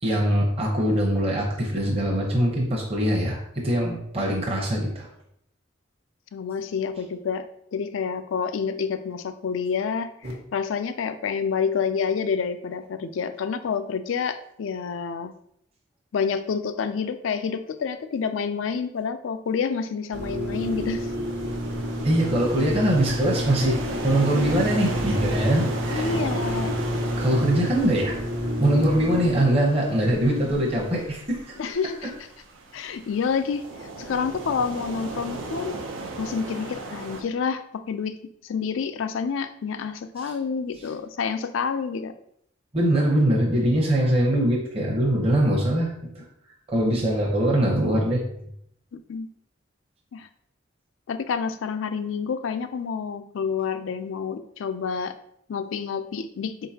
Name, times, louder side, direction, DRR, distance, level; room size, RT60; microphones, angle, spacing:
voice 1, 0.0-5.1 22.0-23.8 24.0-26.1 27.2-28.2 28.6-31.6 32.0-32.1 40.2-40.3 42.7-46.2 46.7-48.2, right 1 dB, 30° right, -2 dB, 0.8 m, -22 dB
voice 2, 6.3-7.4 7.7-15.3 16.1-21.1 22.7-22.9 25.9-26.8 27.6-27.7 31.6-32.1 32.7-33.6 34.0-35.8 36.2-38.1 38.4-42.1 49.1-49.3 50.1-50.3 51.1-55.1 55.5-56.5, left 6 dB, 80° left, 9 dB, 0.4 m, -28 dB
sound 1, 10.2-10.3 20.1-29.4, equal, 60° right, 1.1 m, -29 dB
sound 2, 20.5-37.2, right 2 dB, 85° right, 0.7 m, -36 dB
4.5 x 3.7 x 2.8 m, 0.71 s
head